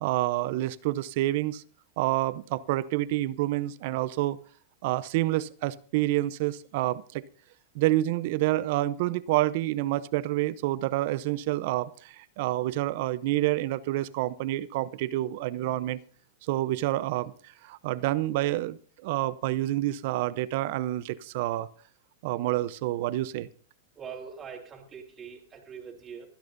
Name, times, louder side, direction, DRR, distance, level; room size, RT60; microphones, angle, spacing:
voice 1, 0.0-1.6 2.0-4.4 4.8-7.2 7.7-16.0 16.5-17.3 17.6-18.8 19.0-21.7 22.2-23.5, right 16 dB, 55° right, 17 dB, 0.7 m, -28 dB
voice 2, 24.0-26.3, right 6 dB, 25° right, 0 dB, 3.4 m, -43 dB
25.0 x 10.5 x 2.7 m, 0.42 s
hypercardioid pair, 125°, 0 cm